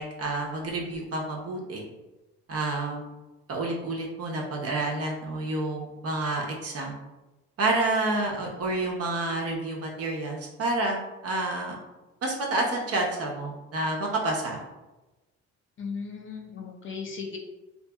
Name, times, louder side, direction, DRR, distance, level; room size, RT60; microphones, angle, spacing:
voice 1, 0.0-1.8 2.5-3.0 3.5-6.9 7.6-11.7 12.2-14.6, right 2 dB, 50° right, -1 dB, 0.6 m, -29 dB
voice 2, 15.8-17.4, left 5 dB, 45° left, 1 dB, 0.4 m, -36 dB
2.6 x 2.6 x 2.2 m, 1.1 s
cardioid pair, 90°, 30 cm